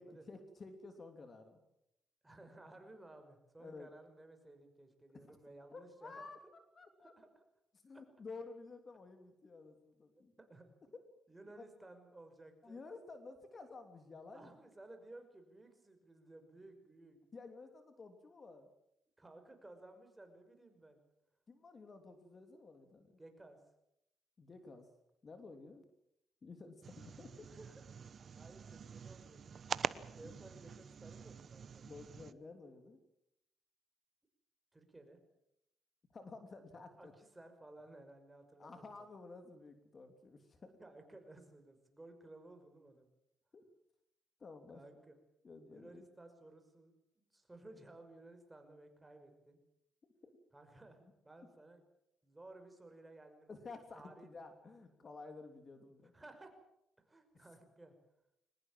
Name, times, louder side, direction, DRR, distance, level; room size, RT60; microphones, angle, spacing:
voice 1, 0.0-1.6 2.4-2.5 3.6-3.9 5.1-5.4 5.7-6.4 6.7-7.1 7.8-10.3 11.6-11.7 12.6-14.5 17.3-18.7 21.5-23.2 24.4-24.9 25.2-25.9 26.4-27.5 30.2-30.4 31.8-33.0 36.1-37.1 38.6-40.8 43.5-43.6 44.4-44.8 45.4-46.0 50.2-50.3 53.5-56.1 57.3-57.4, left 3 dB, 40° left, 7 dB, 3.0 m, -52 dB
voice 2, 2.2-6.5 7.0-7.4 7.9-8.0 10.2-10.7 11.3-12.8 14.3-17.2 19.2-21.0 23.2-23.6 27.5-27.7 28.3-29.5 30.1-31.9 34.7-35.2 37.0-38.8 40.8-43.1 44.7-45.2 45.6-49.6 50.5-51.8 52.2-53.6 53.9-54.3 56.1-56.5 57.0-58.0, right 2 dB, 15° right, 6 dB, 5.6 m, -57 dB
sound 1, 26.8-32.3, right 6 dB, 50° right, 0.9 m, -45 dB
23.0 x 20.0 x 7.6 m, 0.80 s
cardioid pair, 90°, 0 cm